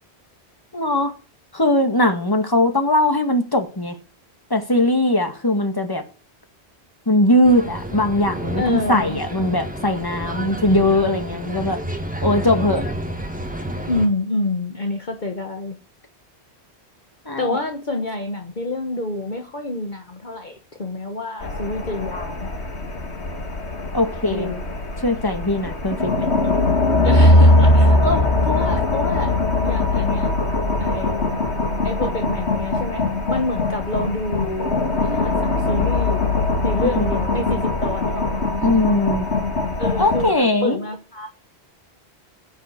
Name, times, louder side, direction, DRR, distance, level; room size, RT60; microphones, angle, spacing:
voice 1, 0.7-1.1 1.5-4.0 4.5-6.0 7.1-11.8 12.2-12.9 17.3-17.6 23.9-24.5 25.0-26.5 36.8-37.1 38.6-39.3 40.0-40.8, left 1 dB, 20° left, 2.0 m, -20 dB
sound 1, 7.4-14.1, right 1 dB, 5° right, 1.9 m, -30 dB
voice 2, 8.6-9.2 13.9-15.8 17.4-22.6 24.2-24.6 27.0-29.3 29.6-30.3 30.8-31.4 31.8-36.2 36.6-38.4 39.8-41.3, left 2 dB, 45° left, 1.5 m, -27 dB
sound 2, 21.4-40.3, left 2 dB, 85° left, 2.5 m, -21 dB
16.0 x 9.1 x 6.8 m
omnidirectional pair, 1.1 m